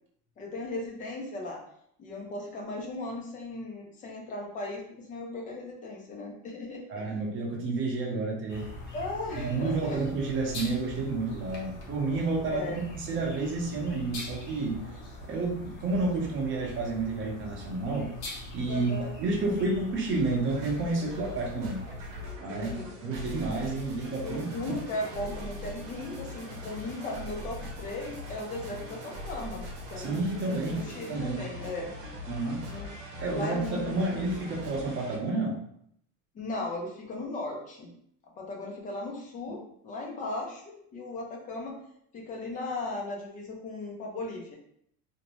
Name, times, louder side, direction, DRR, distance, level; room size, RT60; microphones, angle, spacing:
voice 1, 0.4-1.6 2.0-7.0 8.9-10.0 12.5-12.8 18.7-19.1 22.5-22.9 24.2-29.6 29.9-31.9 32.7-32.9 33.3-34.2 36.3-37.9 38.4-41.8 42.1-44.6, left 2 dB, 20° left, 0 dB, 0.4 m, -37 dB
voice 2, 6.9-8.7 9.4-14.9 15.3-18.1 18.5-21.8 22.4-24.5 30.0-31.4 32.3-32.7 33.2-35.6, right 3 dB, 30° right, -1 dB, 0.7 m, -30 dB
sound 1, 8.5-22.3, left 1 dB, 70° left, 1.0 m, -43 dB
sound 2, 20.1-35.2, left 1 dB, 90° right, 0.8 m, -41 dB
2.6 x 2.0 x 2.9 m, 0.69 s
supercardioid pair, 145°, 38 cm